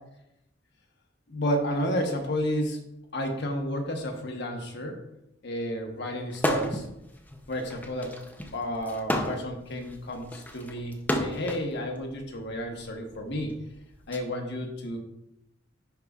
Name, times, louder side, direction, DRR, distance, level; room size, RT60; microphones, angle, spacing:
voice 1, 1.3-2.8 3.1-5.0 5.4-6.8 7.5-8.2 8.5-13.5 14.1-15.0, equal, 60° left, 3 dB, 1.1 m, -31 dB
sound 1, 6.3-6.9 7.3-11.7 12.5-14.2, equal, 10° left, 0.6 m, -31 dB
10.5 x 4.8 x 2.4 m, 0.85 s
head